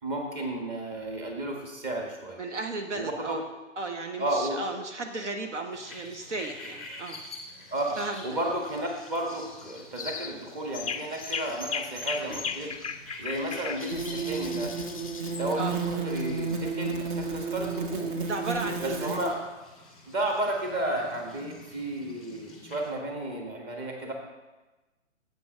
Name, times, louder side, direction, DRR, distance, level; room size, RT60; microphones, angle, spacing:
voice 1, 0.0-2.4 2.9-3.4 4.2-4.6 7.7-8.0 8.2-12.7 13.2-14.7 15.4-18.1 18.8-19.4 20.1-24.1, right 1 dB, 20° right, 1 dB, 1.7 m, -32 dB
voice 2, 2.4-3.4 3.8-7.2 8.0-8.2 15.6-15.7 18.2-19.1, right 3 dB, 65° right, 4 dB, 1.0 m, -34 dB
sound 1, 5.7-22.9, left 2 dB, ahead, 1.8 m, -48 dB
sound 2, 10.0-10.3 10.7-15.5, left 6 dB, 30° left, 0.4 m, -36 dB
sound 3, 12.3-12.4 13.9-19.3, right 4 dB, 40° right, 1.1 m, -32 dB
8.3 x 7.9 x 5.6 m, 1.1 s
figure-of-eight pair, 125°, 38 cm